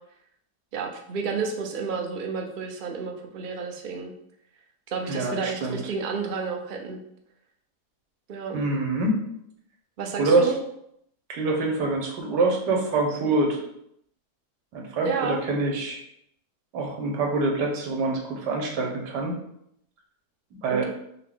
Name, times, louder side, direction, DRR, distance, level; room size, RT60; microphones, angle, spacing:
voice 1, 0.7-4.1 4.9-7.0 8.3-8.6 10.0-10.6 15.1-15.4 20.7-20.8, right 5 dB, 70° right, 2 dB, 0.4 m, -30 dB
voice 2, 5.1-5.8 8.5-9.2 10.2-10.5 11.3-13.6 14.7-16.0 16.7-19.4 20.5-20.9, right 3 dB, 90° right, 1 dB, 1.5 m, -25 dB
5.8 x 2.3 x 3.6 m, 0.73 s
omnidirectional pair, 1.8 m